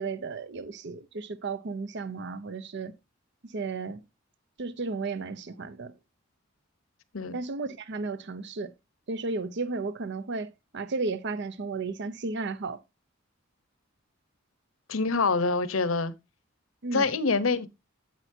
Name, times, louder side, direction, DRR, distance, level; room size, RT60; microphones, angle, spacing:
voice 1, 0.0-3.0 3.4-4.0 4.6-5.9 7.3-8.7 9.1-12.8 16.8-17.1, right 3 dB, 60° right, 0.7 m, -34 dB
voice 2, 14.9-16.1 16.9-17.7, left 4 dB, 80° left, 0.9 m, -25 dB
10.5 x 8.0 x 2.7 m
head